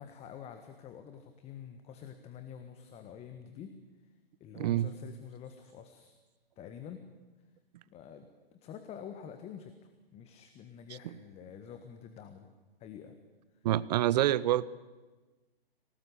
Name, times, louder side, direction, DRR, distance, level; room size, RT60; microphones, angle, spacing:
voice 1, 0.0-3.8 4.4-6.1 6.6-7.0 7.9-9.7 10.1-12.5 12.8-13.2, left 8 dB, 20° left, 8 dB, 1.4 m, -47 dB
voice 2, 4.5-4.9 13.6-14.6, right 13 dB, 45° right, 19 dB, 0.8 m, -26 dB
24.5 x 18.5 x 8.4 m, 1.2 s
hypercardioid pair, 130°, 30 cm